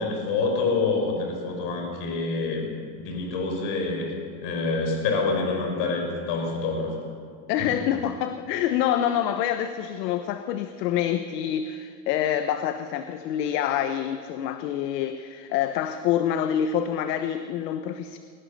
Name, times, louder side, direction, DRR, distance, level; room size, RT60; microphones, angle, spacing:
voice 1, 0.0-2.7 3.0-4.1 4.4-7.0 7.6-7.8, left 3 dB, 55° left, 2 dB, 5.1 m, -27 dB
voice 2, 7.5-18.2, left 10 dB, 70° left, 9 dB, 1.2 m, -26 dB
22.5 x 18.5 x 6.8 m, 2.2 s
supercardioid pair, 145°, 50 cm